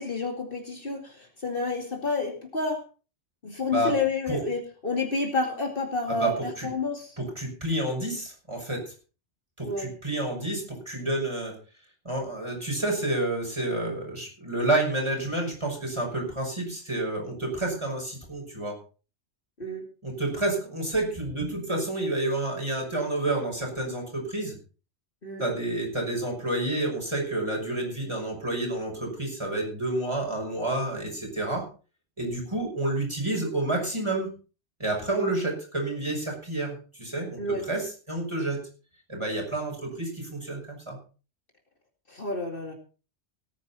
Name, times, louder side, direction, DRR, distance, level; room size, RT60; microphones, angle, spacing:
voice 1, 0.0-2.8 3.4-7.2 9.6-9.9 19.6-19.8 25.2-25.4 35.1-35.3 37.4-37.7 42.1-42.7, left 3 dB, 50° left, 3 dB, 2.6 m, -30 dB
voice 2, 7.2-8.9 9.6-11.5 12.0-18.8 20.0-24.5 25.4-31.6 32.2-34.3 34.8-37.4 37.7-37.8 38.1-38.6 39.1-41.0, right 2 dB, 25° right, 0 dB, 6.1 m, -29 dB
18.0 x 9.8 x 4.2 m, 0.36 s
omnidirectional pair, 1.2 m